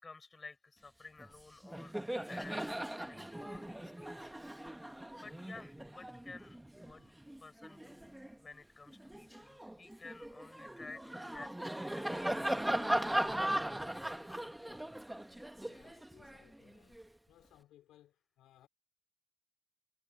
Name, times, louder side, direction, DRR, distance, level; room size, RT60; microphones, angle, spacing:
voice 1, 0.0-1.9 2.3-4.3 5.1-13.2 14.2-14.5, left 3 dB, 25° left, 5.5 m, -54 dB
Laughter, 1.2-1.4 1.6-8.4 8.9-17.0, right 1 dB, 5° right, 1.2 m, -39 dB
voice 2, 15.6-17.0 17.3-18.7, left 13 dB, 85° left, 4.2 m, -64 dB
cardioid pair, 90°, 0 cm